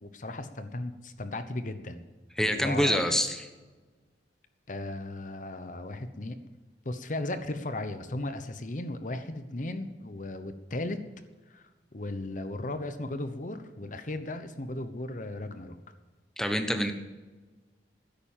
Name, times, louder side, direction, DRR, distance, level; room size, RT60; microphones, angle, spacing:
voice 1, 0.0-2.0 2.4-3.0 4.7-6.4 6.8-11.0 11.5-15.8, left 2 dB, 45° left, 9 dB, 0.9 m, -36 dB
voice 2, 2.4-3.4 16.4-16.9, equal, 5° left, 6 dB, 1.0 m, -26 dB
13.0 x 10.5 x 7.3 m, 1.3 s
head